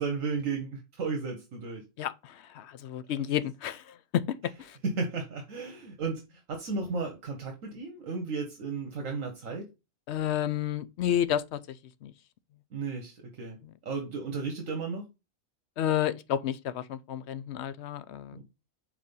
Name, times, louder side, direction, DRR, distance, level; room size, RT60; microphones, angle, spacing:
voice 1, 0.0-1.8 4.8-6.2 6.5-9.6 12.7-13.6 13.8-15.0 18.3-18.4, right 4 dB, 75° right, 1.5 m, -34 dB
voice 2, 2.0-3.8 4.1-4.2 10.1-11.6 12.0-12.1 13.6-13.7 15.8-18.4, left 10 dB, 65° left, 0.8 m, -30 dB
4.9 x 4.4 x 5.3 m
omnidirectional pair, 1.4 m